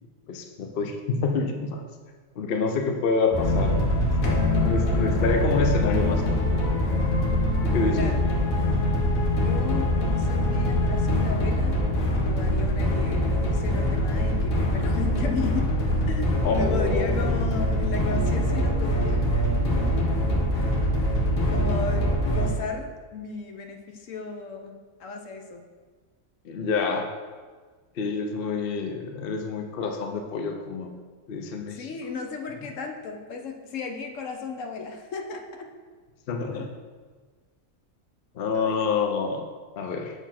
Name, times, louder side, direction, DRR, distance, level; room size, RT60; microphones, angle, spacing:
voice 1, 0.3-1.8 2.4-6.6 7.6-8.1 16.4-17.1 26.4-27.1 28.0-31.0 31.3-31.9 36.3-36.7 38.3-39.4 39.8-40.1, left 4 dB, 55° left, 4 dB, 0.7 m, -27 dB
sound 1, 3.3-22.5, left 1 dB, 85° left, 1.7 m, -24 dB
voice 2, 9.3-11.9 12.2-15.7 16.1-20.0 21.5-25.7 31.7-35.7 36.5-36.7 38.5-38.8, left 4 dB, 70° left, 4 dB, 1.1 m, -35 dB
7.0 x 4.3 x 5.8 m, 1.5 s
omnidirectional pair, 1.4 m